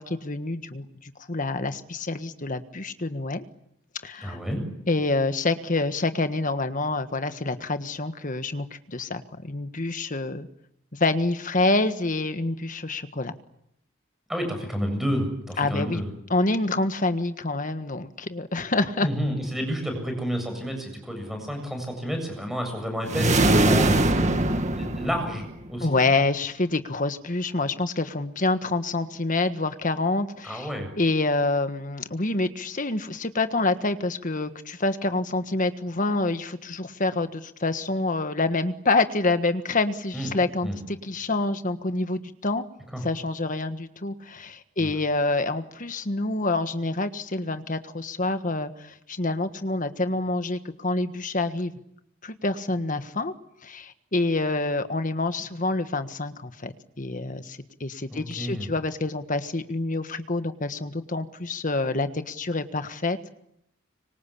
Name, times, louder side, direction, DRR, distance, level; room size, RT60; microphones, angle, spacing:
voice 1, 0.0-3.4 4.0-4.4 4.9-10.5 10.9-13.3 15.6-16.0 16.3-19.1 25.8-30.7 31.0-42.6 43.0-51.7 52.2-53.3 53.6-63.2, left 2 dB, 40° left, 10 dB, 1.5 m, -27 dB
voice 2, 4.2-4.6 14.3-16.0 19.0-24.5 24.8-25.9 30.4-30.9 40.1-40.3 40.6-40.8 42.9-43.0 44.8-44.9 58.1-58.7, equal, ahead, 4 dB, 7.4 m, -30 dB
sound 1, 23.1-25.7, right 1 dB, 35° right, 1.8 m, -21 dB
25.0 x 24.5 x 8.5 m, 0.78 s
head